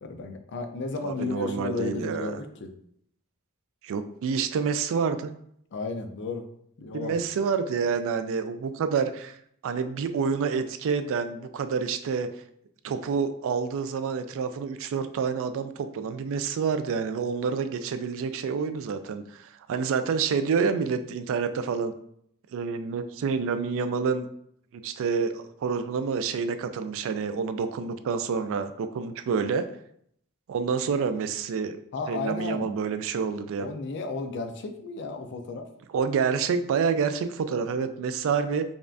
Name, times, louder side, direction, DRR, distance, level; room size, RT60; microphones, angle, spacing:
voice 1, 0.0-2.7 5.7-6.5 6.8-7.3 31.9-32.7 33.6-35.7, left 3 dB, 55° left, 7 dB, 0.4 m, -33 dB
voice 2, 1.0-2.4 3.8-5.3 6.9-9.4 9.6-12.3 12.8-21.9 22.5-24.3 24.7-29.7 30.5-31.8 32.1-33.7 35.9-38.6, right 5 dB, 60° right, 10 dB, 0.3 m, -28 dB
5.2 x 2.4 x 2.5 m, 0.69 s
head